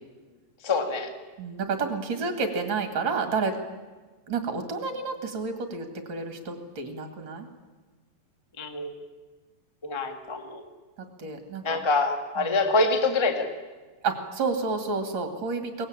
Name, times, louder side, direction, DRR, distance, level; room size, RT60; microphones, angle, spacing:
voice 1, 0.6-1.1 8.6-8.9 9.8-10.6 11.6-13.5, left 3 dB, 25° left, 5 dB, 0.5 m, -25 dB
voice 2, 1.4-3.5 4.3-7.5 11.2-11.8 12.4-12.6 14.0-15.9, right 4 dB, 40° right, 6 dB, 2.1 m, -30 dB
23.5 x 18.5 x 8.8 m, 1.3 s
omnidirectional pair, 4.1 m